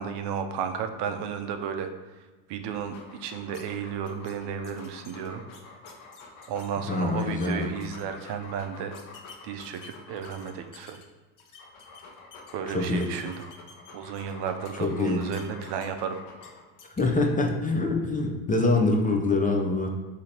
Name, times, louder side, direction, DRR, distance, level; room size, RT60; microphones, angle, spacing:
voice 1, 0.0-1.9 2.5-5.4 6.5-9.0 9.4-11.0 12.5-13.3 13.9-16.2, right 7 dB, 55° right, 7 dB, 0.6 m, -33 dB
Dog, 2.6-10.8 11.4-16.8, left 3 dB, 85° left, 0.8 m, -48 dB
sound 1, 3.5-3.6 4.1-4.3 4.6-6.7 7.0-7.5 7.8-8.3 8.9-11.0 11.4-12.5 12.8-14.3 14.6-16.0 16.4-16.5 16.8-17.0, left 6 dB, 40° left, 0.8 m, -51 dB
voice 2, 6.9-7.7 12.7-13.1 14.8-15.2 17.0-19.9, left 3 dB, 15° left, 2 dB, 0.5 m, -25 dB
3.7 x 2.8 x 4.4 m, 1.3 s
hypercardioid pair, 75°, 50 cm